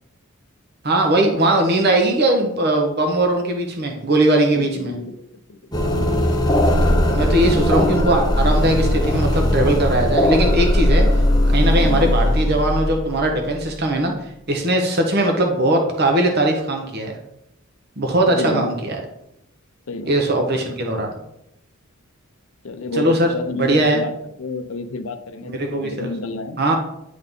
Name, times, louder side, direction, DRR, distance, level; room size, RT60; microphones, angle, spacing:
voice 1, 0.8-4.9 6.8-11.1 11.5-14.1 14.5-17.1 18.0-19.0 20.1-21.1 22.9-23.3 23.6-24.0 25.4-26.1 26.6-26.8, right 1 dB, 45° right, 3 dB, 1.0 m, -19 dB
voice 2, 4.5-5.6 11.8-12.1 18.3-18.7 19.9-20.1 22.6-24.1 24.4-26.6, left 3 dB, 65° left, 10 dB, 0.6 m, -30 dB
sound 1, 5.7-13.7, left 1 dB, 20° left, 0.7 m, -18 dB
9.5 x 3.7 x 3.7 m, 0.80 s
head